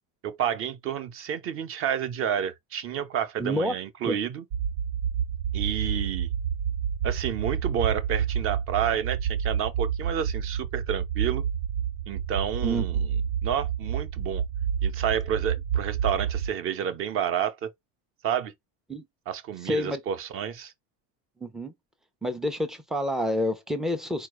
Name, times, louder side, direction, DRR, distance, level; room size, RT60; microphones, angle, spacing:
voice 1, 0.2-4.4 5.5-6.3 7.0-11.4 12.1-13.2 13.4-14.4 14.8-17.7 18.2-18.5 19.3-20.7, right 9 dB, 35° right, 0.7 m, -30 dB
voice 2, 3.4-3.7 4.1-4.2 12.6-13.0 18.9-19.1 19.6-20.0 21.4-21.7 22.2-24.3, equal, ahead, 0.4 m, -28 dB
sound 1, 4.5-16.5, right 8 dB, 85° right, 0.8 m, -29 dB
4.7 x 2.2 x 4.7 m
cardioid pair, 175°, 37 cm